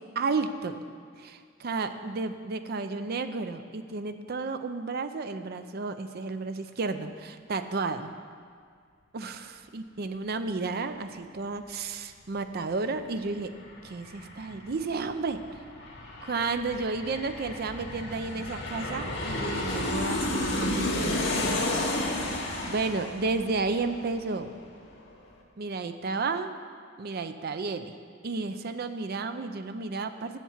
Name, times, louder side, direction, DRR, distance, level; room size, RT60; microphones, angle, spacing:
voice 1, 0.2-0.8 1.2-8.1 9.1-13.5 13.8-15.4 16.2-21.3 22.6-24.6 25.6-26.6 27.0-27.9 28.2-30.4, right 3 dB, 50° right, 9 dB, 0.5 m, -32 dB
Aircraft, 12.9-13.0 13.3-24.6 24.9-25.0, left 1 dB, 60° left, 1.7 m, -32 dB
8.0 x 7.3 x 7.2 m, 2.1 s
head